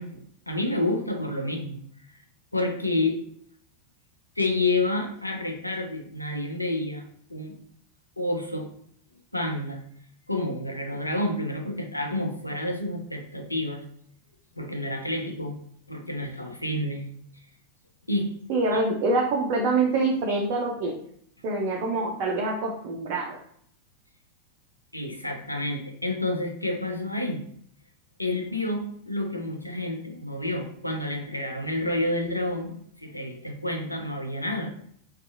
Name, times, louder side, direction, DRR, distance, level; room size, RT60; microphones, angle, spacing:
voice 1, 0.0-1.8 2.5-3.2 4.4-7.0 7.3-7.6 8.2-8.7 9.3-9.8 10.3-13.8 14.5-15.6 15.9-17.1 18.1-18.3 24.9-27.4 28.2-34.7, left 2 dB, 85° left, 2 dB, 0.4 m, -29 dB
voice 2, 18.5-20.9 21.4-23.4, right 3 dB, 45° right, 0 dB, 0.4 m, -25 dB
2.5 x 2.3 x 2.5 m, 0.65 s
figure-of-eight pair, 90°, 0 cm